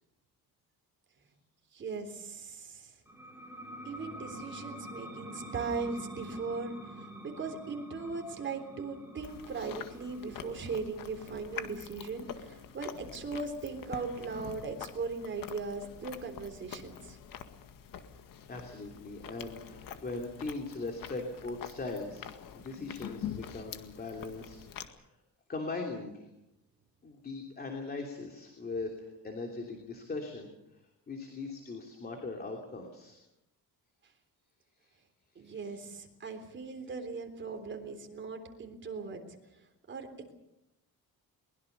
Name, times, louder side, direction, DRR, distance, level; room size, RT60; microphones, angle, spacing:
voice 1, 1.7-2.9 3.9-17.2 35.4-39.2 39.9-40.3, right 4 dB, 30° right, 4 dB, 3.6 m, -39 dB
sound 1, 3.1-14.3, right 1 dB, 5° right, 4.1 m, -47 dB
Chewing mastication, 9.2-24.9, left 8 dB, 65° left, 1.9 m, -46 dB
voice 2, 18.5-22.3 22.5-24.9 25.5-26.3 27.0-30.5 31.1-33.2 35.4-35.8, left 3 dB, 25° left, 2 dB, 3.0 m, -40 dB
23.0 x 21.5 x 6.9 m, 0.88 s
cardioid pair, 160°, 37 cm